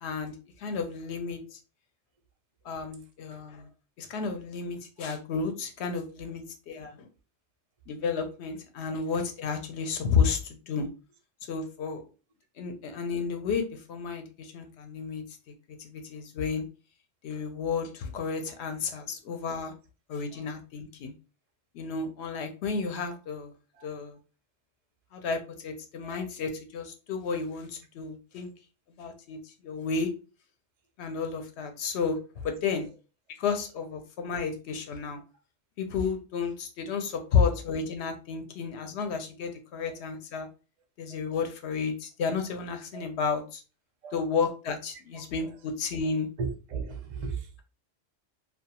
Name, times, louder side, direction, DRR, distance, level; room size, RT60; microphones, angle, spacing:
voice 1, 0.0-1.6 2.6-3.7 4.0-7.1 7.9-10.9 11.5-12.0 12.6-15.2 15.8-16.7 17.2-19.7 20.1-21.1 21.7-23.5 23.8-24.2 25.1-28.5 29.0-30.1 31.0-32.2 32.4-32.9 33.4-35.2 35.8-40.5 41.0-43.6 44.1-46.3, left 5 dB, 75° left, 0.8 m, -32 dB
voice 2, 46.4-47.5, right 5 dB, 55° right, 0.4 m, -36 dB
2.3 x 2.3 x 2.8 m
omnidirectional pair, 1.2 m